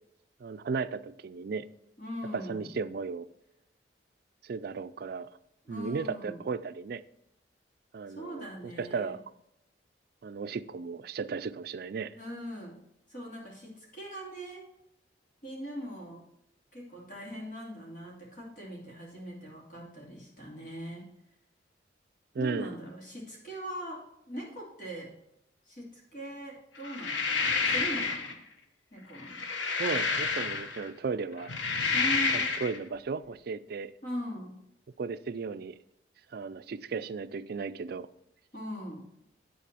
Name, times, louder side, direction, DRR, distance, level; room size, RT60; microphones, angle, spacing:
voice 1, 0.4-1.7 2.3-3.3 4.4-5.3 5.7-7.0 7.9-9.2 10.2-12.1 22.3-22.7 29.8-31.6 32.3-33.9 35.0-35.8 36.3-38.1, right 5 dB, 55° right, 14 dB, 0.4 m, -35 dB
voice 2, 2.0-2.7 5.6-6.4 8.1-9.1 12.2-12.8 13.1-14.7 15.4-16.3 16.7-21.1 22.4-25.1 25.6-28.4 28.9-29.4 31.9-32.5 34.0-34.6 38.5-39.0, equal, 45° left, -3 dB, 2.8 m, -41 dB
sound 1, 26.8-28.3 29.1-30.9 31.4-32.8, left 4 dB, 90° left, 1.1 m, -29 dB
10.0 x 4.1 x 6.8 m, 0.82 s
head